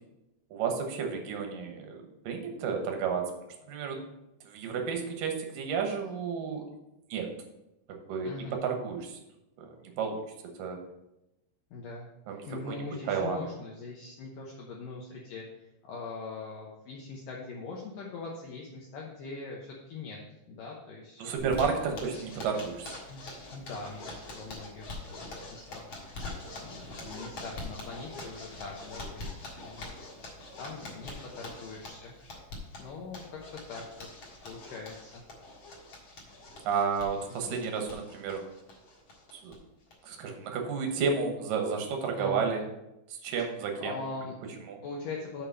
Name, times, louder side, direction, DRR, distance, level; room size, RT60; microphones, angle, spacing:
voice 1, 0.5-3.3 3.7-4.0 4.4-6.7 7.1-7.3 7.9-9.2 9.6-10.2 10.6-10.8 12.3-13.4 21.2-23.0 36.6-38.4 39.3-39.5 40.0-42.7 43.1-43.9 44.7-44.8, right 5 dB, 70° right, 3 dB, 2.2 m, -32 dB
voice 2, 8.2-8.6 11.7-12.1 12.5-20.2 20.5-22.1 23.1-29.9 30.6-32.1 32.8-35.2 37.5-37.6 42.2-42.5 43.8-44.5 44.8-45.5, left 3 dB, 75° left, -2 dB, 2.0 m, -42 dB
Zipper (clothing), 21.4-39.6 39.9-40.0 40.3-40.4 40.7-41.1, left 2 dB, 55° left, 1.4 m, -44 dB
6.9 x 5.9 x 5.5 m, 0.91 s
omnidirectional pair, 5.1 m